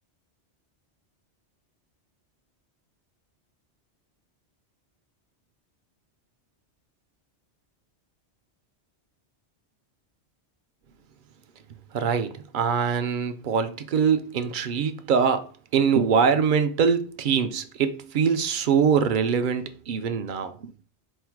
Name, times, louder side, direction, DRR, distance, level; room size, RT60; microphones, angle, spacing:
voice 1, 11.9-20.5, right 6 dB, 60° right, 0.6 m, -23 dB
4.4 x 2.1 x 4.5 m
omnidirectional pair, 1.2 m